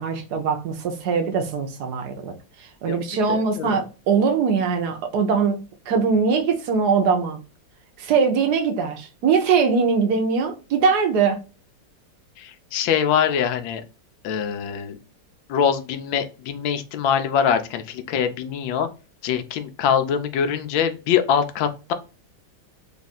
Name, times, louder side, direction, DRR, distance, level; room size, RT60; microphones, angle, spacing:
voice 1, 0.0-2.3 2.8-5.6 5.9-7.4 8.0-11.4, right 5 dB, 65° right, 1.2 m, -21 dB
voice 2, 3.3-3.8 12.4-13.8 14.2-15.0 15.5-18.9 19.2-21.9, left 8 dB, 90° left, 1.3 m, -23 dB
3.6 x 2.4 x 4.1 m
omnidirectional pair, 2.0 m